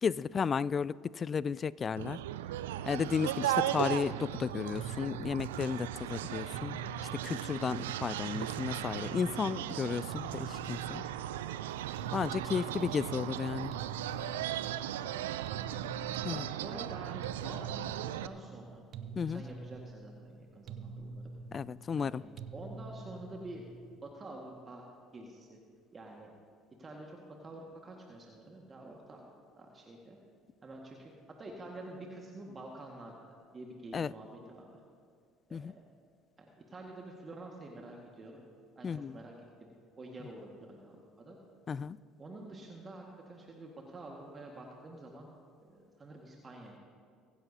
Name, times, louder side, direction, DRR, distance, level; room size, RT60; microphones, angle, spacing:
voice 1, 0.0-2.2 2.9-6.8 7.1-11.0 12.1-13.7 16.2-16.4 19.2-19.4 21.5-22.2 33.9-34.1 35.5-35.7 38.8-39.2 41.7-42.0, left 6 dB, 35° left, 21 dB, 0.3 m, -33 dB
sound 1, 2.0-18.3, right 12 dB, 80° right, 0.4 m, -37 dB
sound 2, 4.7-24.1, right 3 dB, 55° right, 0.8 m, -47 dB
voice 2, 12.6-13.0 16.3-21.3 22.0-22.3 22.5-23.6 24.0-24.8 25.1-25.6 25.9-26.3 26.8-29.2 29.6-30.2 30.6-34.8 35.5-35.7 36.4-38.4 38.7-39.3 39.6-41.4 42.2-45.3 45.6-46.8, right 2 dB, 30° right, 0 dB, 1.7 m, -48 dB
23.5 x 10.5 x 2.8 m, 2.1 s
hypercardioid pair, 60°, 0 cm